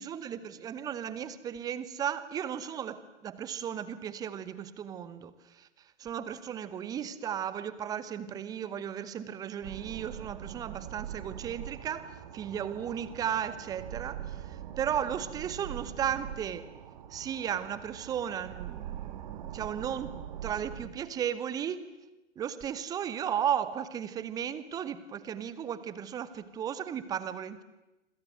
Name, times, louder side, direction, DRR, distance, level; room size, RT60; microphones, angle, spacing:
voice 1, 0.0-5.7 6.0-16.7 17.1-21.9 22.4-27.6, right 9 dB, 10° right, 15 dB, 1.0 m, -35 dB
sound 1, 9.6-20.9, right 11 dB, 35° right, 2.8 m, -43 dB
27.0 x 26.0 x 7.8 m, 1.0 s
figure-of-eight pair, 125°, 36 cm